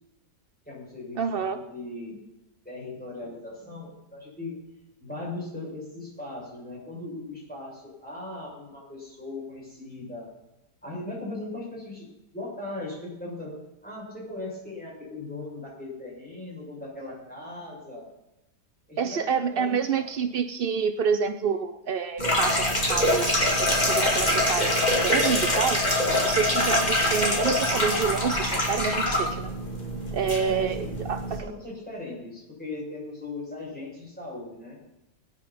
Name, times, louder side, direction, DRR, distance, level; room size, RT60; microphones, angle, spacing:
voice 1, 0.6-2.2 2.6-4.6 5.0-10.3 10.8-18.1 18.9-20.1 30.4-30.9 31.3-34.8, left 2 dB, 5° left, -5 dB, 6.7 m, -38 dB
voice 2, 1.2-1.6 19.0-25.8 26.2-29.5 30.1-31.4, right 6 dB, 75° right, 10 dB, 0.5 m, -28 dB
sound 1, 22.2-31.4, left 1 dB, 25° left, 2.8 m, -24 dB
21.0 x 9.8 x 4.2 m, 0.93 s
omnidirectional pair, 1.8 m